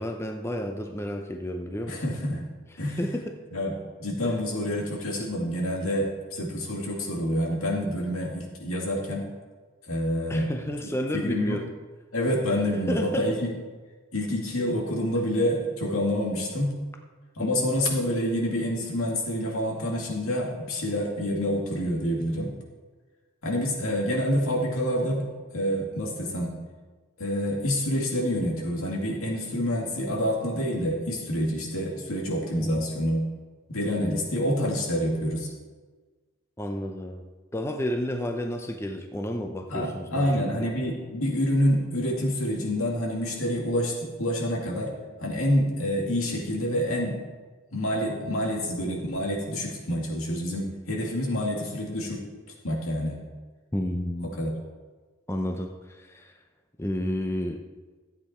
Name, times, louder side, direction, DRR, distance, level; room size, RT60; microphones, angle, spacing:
voice 1, 0.0-2.0 2.7-3.3 4.2-4.3 10.3-11.7 12.9-13.3 17.4-17.7 32.6-32.9 34.0-34.2 36.6-37.2 37.5-40.3 40.6-40.7 53.7-54.4 55.3-56.3 56.8-57.6, left 1 dB, 10° left, 4 dB, 0.5 m, -31 dB
voice 2, 1.9-2.4 2.8-3.2 3.5-3.7 4.0-9.3 9.9-10.5 11.1-11.6 12.1-13.5 14.1-16.8 17.4-22.5 23.4-26.6 27.2-33.2 33.7-35.5 39.7-44.9 45.2-47.2 47.7-52.2 52.6-53.2 54.4-54.5, equal, 85° left, -1 dB, 2.3 m, -27 dB
13.5 x 8.5 x 4.4 m, 1.4 s
head